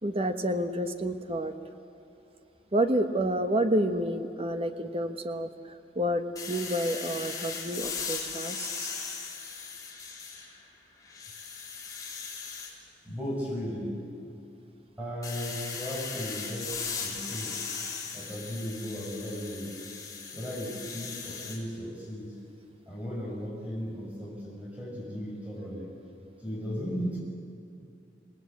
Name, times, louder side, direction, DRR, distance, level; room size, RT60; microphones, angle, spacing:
voice 1, 0.0-1.5 2.7-8.9, right 1 dB, 35° right, 7 dB, 1.4 m, -29 dB
sound 1, 6.4-10.6 11.0-12.7 15.2-21.6, left 5 dB, 20° left, 3.9 m, -38 dB
voice 2, 13.0-14.0 15.0-17.6 18.1-19.8 20.3-22.3 22.9-25.9 26.4-27.2, equal, 10° right, -5 dB, 6.2 m, -36 dB
27.5 x 18.5 x 8.6 m, 2.8 s
head